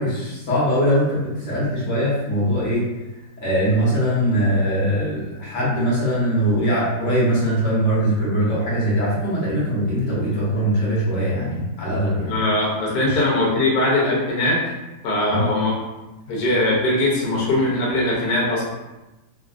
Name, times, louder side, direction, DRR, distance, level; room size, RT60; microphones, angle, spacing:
voice 1, 0.0-2.9 3.4-12.3 13.0-13.2 15.3-15.5, equal, 50° left, -8 dB, 1.1 m, -21 dB
voice 2, 12.3-14.6 15.0-15.8 16.3-18.6, left 1 dB, 65° left, -4 dB, 1.1 m, -20 dB
3.2 x 2.3 x 2.4 m, 1.1 s
omnidirectional pair, 2.0 m